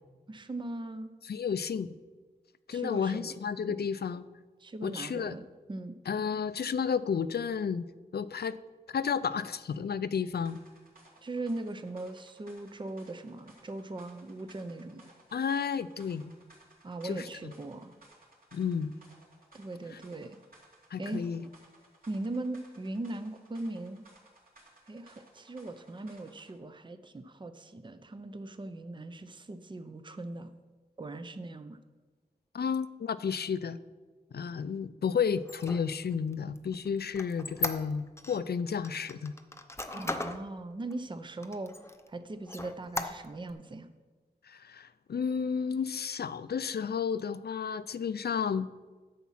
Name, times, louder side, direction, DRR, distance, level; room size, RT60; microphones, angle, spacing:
voice 1, 0.3-1.1 2.7-3.3 3.7-3.8 4.6-5.4 5.7-6.0 11.2-15.1 16.8-17.9 19.5-20.4 21.0-21.2 22.1-24.0 24.9-30.5 31.0-31.8 39.9-41.7 42.1-43.9, right 2 dB, 30° right, 10 dB, 0.6 m, -39 dB
voice 2, 1.2-1.9 2.7-4.3 4.8-5.4 6.1-7.9 8.1-8.6 8.9-10.6 15.3-16.2 17.0-17.5 18.5-18.9 19.9-20.0 20.9-21.5 32.5-33.8 34.3-39.3 44.4-48.7, left 6 dB, 70° left, 15 dB, 0.5 m, -32 dB
sound 1, 10.4-26.6, right 2 dB, 60° right, 2.9 m, -60 dB
Squeak, 35.4-38.4 38.8-40.4 40.9-41.0 41.4-42.1 42.5-43.5, left 2 dB, 15° left, 0.7 m, -37 dB
10.5 x 7.2 x 5.7 m, 1.3 s
wide cardioid pair, 100°, 17 cm